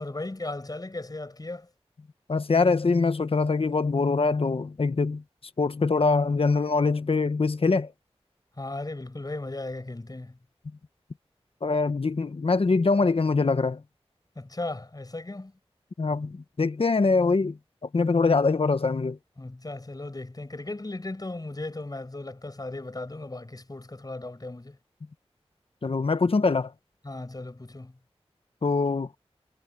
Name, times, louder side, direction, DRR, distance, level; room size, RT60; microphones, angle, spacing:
voice 1, 0.0-1.7 8.6-10.4 14.4-15.5 19.4-24.8 27.0-28.0, left 2 dB, 35° left, 7.2 m, -36 dB
voice 2, 2.3-5.2 5.6-7.9 11.6-13.8 16.0-19.2 25.8-26.7 28.6-29.1, left 4 dB, 60° left, 1.3 m, -23 dB
wide cardioid pair, 60°, 11 cm